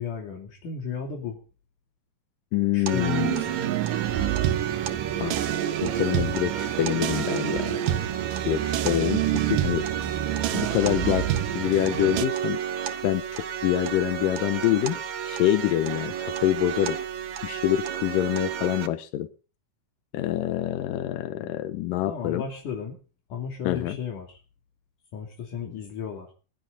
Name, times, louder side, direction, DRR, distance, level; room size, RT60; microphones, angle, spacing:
voice 1, 0.0-1.4 2.7-3.6 22.1-23.0 23.3-24.4 25.1-26.3, left 7 dB, 70° left, 1 dB, 4.2 m, -34 dB
voice 2, 2.5-3.4 5.2-5.4 5.8-7.8 8.5-9.9 10.5-11.3 11.6-12.6 13.0-15.0 15.3-17.0 17.4-19.3 20.1-22.4 23.6-24.0, left 13 dB, 90° left, 11 dB, 2.6 m, -26 dB
sound 1, 2.9-18.9, right 9 dB, 60° right, 2.4 m, -32 dB
sound 2, 3.0-12.3, right 12 dB, 85° right, 2.7 m, -28 dB
22.0 x 13.0 x 3.9 m, 0.37 s
omnidirectional pair, 3.8 m